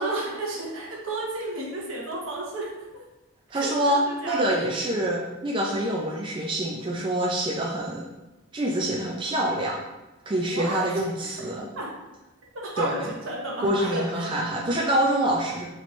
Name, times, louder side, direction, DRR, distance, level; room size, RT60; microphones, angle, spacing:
voice 1, 0.0-2.7 3.5-4.6 10.5-10.8 11.8-11.9 12.6-13.0 13.2-14.3, right 2 dB, 70° right, -3 dB, 1.0 m, -32 dB
voice 2, 3.5-8.0 8.5-9.8 10.3-11.7 12.8-13.1 13.6-15.7, right 1 dB, 25° right, -3 dB, 0.4 m, -26 dB
4.2 x 3.1 x 3.1 m, 1.1 s
head